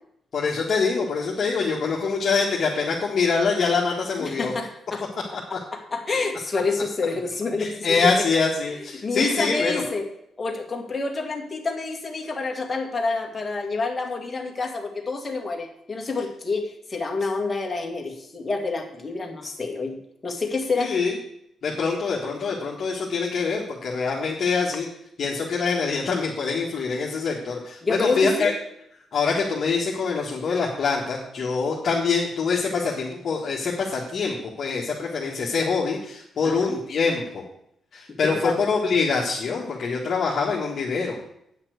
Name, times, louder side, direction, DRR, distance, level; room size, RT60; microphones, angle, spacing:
voice 1, 0.3-4.5 7.6-9.8 20.8-21.1 21.6-24.9 25.2-28.5 29.1-37.4 37.9-41.2, left 4 dB, 45° left, -4 dB, 1.6 m, -24 dB
voice 2, 4.2-5.1 5.7-8.3 8.9-10.1 10.4-20.0 20.2-20.9 27.8-28.6 36.4-36.8 38.2-38.6, left 3 dB, 20° left, 2 dB, 1.8 m, -28 dB
9.2 x 5.8 x 8.0 m, 0.75 s
cardioid pair, 150°, 0 cm